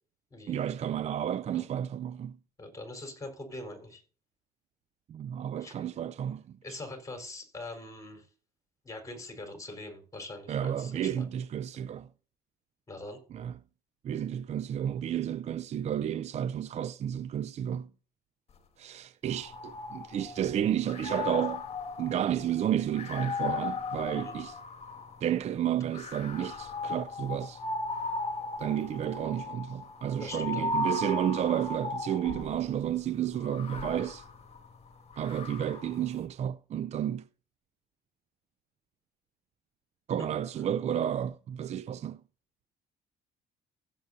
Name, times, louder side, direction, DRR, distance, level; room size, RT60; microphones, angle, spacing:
voice 1, 0.5-2.4 5.1-6.4 10.5-12.1 13.3-13.5 14.0-17.9 18.8-21.6 22.0-24.6 25.2-27.6 28.6-34.3 35.2-37.2 40.1-42.2, right 10 dB, 40° right, 0.4 m, -31 dB
voice 2, 2.6-4.0 5.6-5.8 6.6-8.3 8.8-11.2 11.8-11.9 12.9-13.2 24.1-24.4 30.2-30.7 40.2-40.3, left 2 dB, 20° left, 4.3 m, -43 dB
sound 1, 19.3-20.5 20.9-25.2 25.9-32.6 33.4-36.0, left 3 dB, 40° left, 2.0 m, -36 dB
16.0 x 7.6 x 2.7 m
cardioid pair, 110°, 17 cm